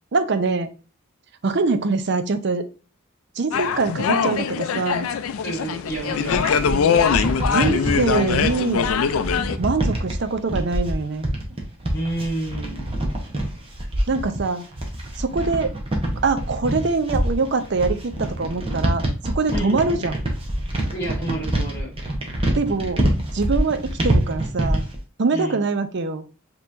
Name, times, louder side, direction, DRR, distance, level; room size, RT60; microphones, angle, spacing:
voice 1, 0.1-0.7 1.4-2.6 3.4-5.1 7.5-8.9 9.6-11.2 14.1-14.6 15.2-15.7 16.2-20.2 22.5-23.1 23.3-24.9 25.2-26.3, right 3 dB, 55° right, 9 dB, 0.5 m, -23 dB
sound 1, 3.5-9.6, left 6 dB, 80° left, 0.4 m, -22 dB
voice 2, 5.4-6.7 11.9-12.9 19.5-20.0 20.9-21.9 25.3-25.6, right 1 dB, 15° left, -3 dB, 1.6 m, -30 dB
sound 2, 5.9-25.0, right 1 dB, 25° right, 0.9 m, -25 dB
5.4 x 3.0 x 2.6 m, 0.36 s
head